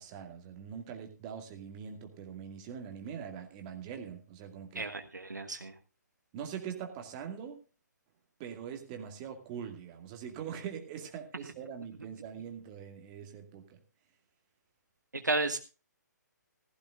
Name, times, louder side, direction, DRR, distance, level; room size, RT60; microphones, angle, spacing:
voice 1, 0.0-4.9 6.3-7.6 8.4-13.8, right 8 dB, 25° right, 4 dB, 2.2 m, -43 dB
voice 2, 4.7-5.7 15.1-15.6, right 2 dB, 75° right, 8 dB, 1.5 m, -33 dB
15.5 x 15.0 x 2.5 m, 0.32 s
figure-of-eight pair, 135°, 10 cm